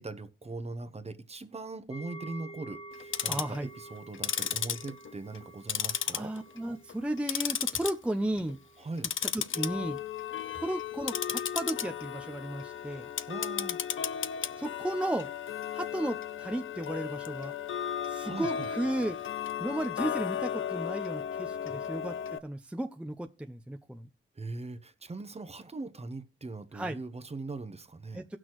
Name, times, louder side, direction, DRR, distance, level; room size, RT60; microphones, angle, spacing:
voice 1, 0.0-6.3 8.8-9.1 12.7-13.8 18.2-18.7 21.7-21.8 24.4-28.2, right 3 dB, 30° right, 1.0 m, -41 dB
sound 1, 1.9-11.0 11.3-11.5 12.0-12.1, right 2 dB, 30° left, 1.6 m, -51 dB
Tick-tock, 2.9-3.6 4.1-5.4 5.7-6.6 6.9-7.9 8.3-8.5 9.0-22.4, left 9 dB, 75° left, 0.6 m, -34 dB
voice 2, 3.3-3.7 6.1-8.6 9.2-10.0 10.5-13.1 14.6-15.3 15.7-17.5 18.0-19.2 19.6-22.2 22.4-24.1 26.7-27.0 28.1-28.4, right 1 dB, 5° right, 0.6 m, -34 dB
18.0 x 6.2 x 3.0 m
wide cardioid pair, 90°, 21 cm